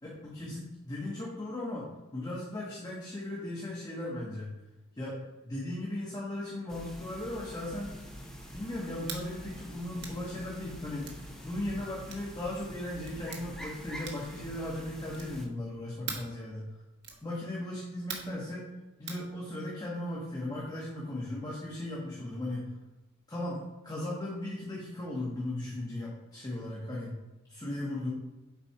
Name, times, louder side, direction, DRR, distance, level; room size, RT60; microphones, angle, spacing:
voice 1, 0.0-4.5 5.0-5.2 5.4-7.9 8.5-16.7 17.2-18.7 19.0-22.7 23.3-27.2 27.5-28.1, left 1 dB, 20° left, -5 dB, 1.2 m, -37 dB
sound 1, 6.7-15.5, equal, ahead, 0.9 m, -45 dB
sound 2, 9.0-9.3 10.0-10.2 11.0-11.2 12.1-12.3 13.0-13.4 14.0-14.4 15.1-15.4 16.1-16.3 17.0-17.3 18.1-18.4 19.1-19.2, right 5 dB, 55° right, 1.2 m, -41 dB
7.1 x 4.4 x 4.6 m, 1.1 s
head